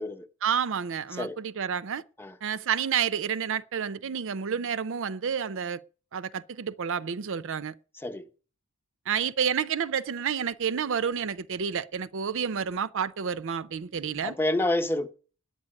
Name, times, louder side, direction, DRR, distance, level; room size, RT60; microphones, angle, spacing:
voice 1, 0.4-2.0 2.4-5.8 6.1-7.7 9.1-14.4, right 7 dB, 60° right, 0.5 m, -29 dB
voice 2, 14.2-15.1, left 1 dB, 10° left, 0.8 m, -28 dB
9.8 x 8.7 x 8.5 m
head